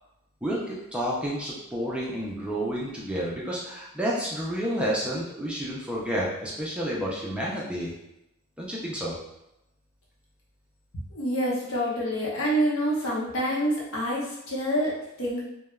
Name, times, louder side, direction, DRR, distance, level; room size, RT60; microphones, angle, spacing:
voice 1, 0.4-7.9 8.6-9.2, equal, 5° right, -5 dB, 0.3 m, -30 dB
voice 2, 11.1-15.4, equal, 70° left, -5 dB, 0.8 m, -27 dB
3.2 x 2.1 x 2.3 m, 0.87 s
head